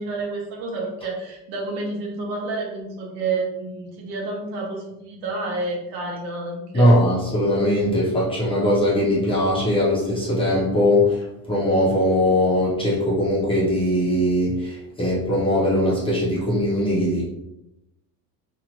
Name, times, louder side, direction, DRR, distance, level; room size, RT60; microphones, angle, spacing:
voice 1, 0.0-6.9, right 3 dB, 55° right, -1 dB, 0.9 m, -29 dB
voice 2, 6.7-17.2, left 1 dB, 10° left, -7 dB, 0.8 m, -20 dB
2.9 x 2.4 x 3.0 m, 0.89 s
cardioid pair, 145°, 46 cm